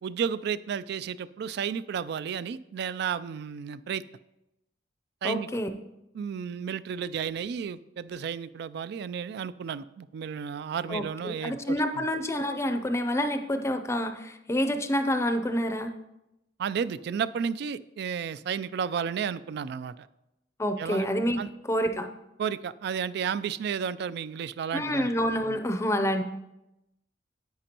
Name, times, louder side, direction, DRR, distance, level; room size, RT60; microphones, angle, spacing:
voice 1, 0.0-4.0 5.2-5.5 6.1-12.1 16.6-20.1 20.8-21.1 21.4-21.5 22.4-25.1, right 7 dB, 65° right, 16 dB, 0.3 m, -32 dB
voice 2, 5.2-5.7 10.9-15.9 20.6-21.4 21.7-22.1 24.7-26.2, equal, 15° left, 8 dB, 0.5 m, -28 dB
10.5 x 8.2 x 2.9 m, 0.91 s
head